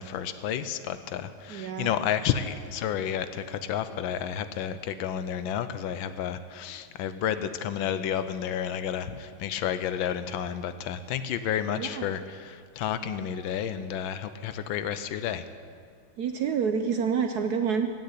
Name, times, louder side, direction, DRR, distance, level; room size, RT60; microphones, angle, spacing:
voice 1, 0.0-15.4, left 9 dB, 75° left, 11 dB, 1.4 m, -31 dB
voice 2, 1.5-1.9 11.7-12.1 16.2-17.9, right 6 dB, 65° right, 7 dB, 1.0 m, -28 dB
15.5 x 6.6 x 9.8 m, 2.1 s
omnidirectional pair, 2.2 m